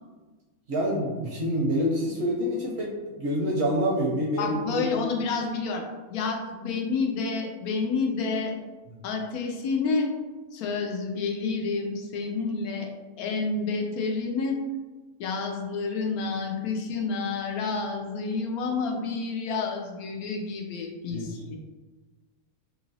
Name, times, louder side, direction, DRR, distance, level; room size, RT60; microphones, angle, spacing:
voice 1, 0.7-4.9 21.1-21.6, equal, 60° right, -3 dB, 0.7 m, -27 dB
voice 2, 4.4-5.8 6.1-8.6 9.0-10.1 10.5-12.9 13.2-14.6 15.2-21.6, left 4 dB, 90° left, 2 dB, 1.1 m, -29 dB
3.0 x 2.9 x 2.6 m, 1.3 s
omnidirectional pair, 1.5 m